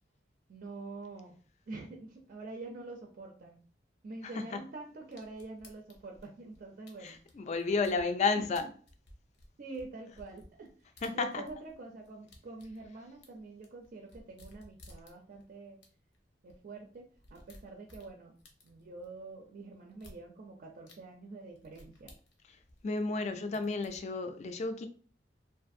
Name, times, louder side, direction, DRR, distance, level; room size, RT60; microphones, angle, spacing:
voice 1, 0.5-1.4 1.7-3.6 4.0-7.2 8.4-8.5 9.6-10.7 11.1-15.8 16.4-18.3 18.6-22.1 23.2-23.8, right 3 dB, 55° right, 0.4 m, -46 dB
voice 2, 4.2-4.6 7.0-8.6 11.0-11.4 22.8-24.9, left 4 dB, 40° left, 0.3 m, -32 dB
sound 1, 5.1-8.1 8.5-11.8 12.0-15.4 15.8-15.9 16.1-16.2 16.5-16.6 16.9-19.1 19.9-20.2 20.9-21.0 21.6-23.2 23.5-24.0, left 1 dB, 90° left, 0.7 m, -56 dB
2.5 x 2.5 x 2.5 m
head